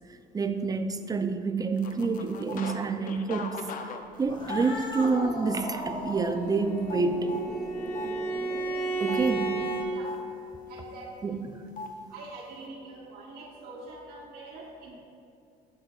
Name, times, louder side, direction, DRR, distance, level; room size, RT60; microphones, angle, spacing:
voice 1, 0.3-7.3 9.0-9.6 11.2-11.6, right 4 dB, 20° right, 9 dB, 0.4 m, -28 dB
sound 1, 1.8-2.8 3.0-5.1 5.6-5.8 6.1-7.5 7.9-8.1 9.1-10.2 11.8-11.9, left 4 dB, 55° left, 0.6 m, -39 dB
Cat, 4.2-9.8, left 1 dB, 30° left, 1.2 m, -38 dB
Bowed string instrument, 6.3-9.9, right 4 dB, 85° left, 1.7 m, -32 dB
voice 2, 10.7-11.4 12.1-14.9, right 2 dB, 65° right, -6 dB, 1.3 m, -44 dB
10.5 x 6.7 x 2.4 m, 2.7 s
cardioid pair, 110°, 17 cm